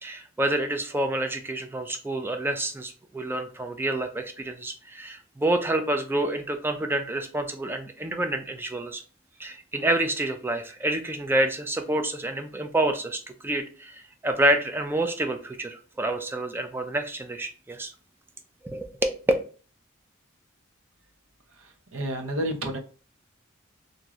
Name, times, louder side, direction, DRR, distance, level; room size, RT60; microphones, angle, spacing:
voice 1, 0.0-9.0 9.4-17.9 18.6-19.2, right 1 dB, 10° right, 6 dB, 0.4 m, -28 dB
voice 2, 21.5-22.8, right 1 dB, 80° right, 4 dB, 0.6 m, -31 dB
3.0 x 2.5 x 2.3 m, 0.38 s
head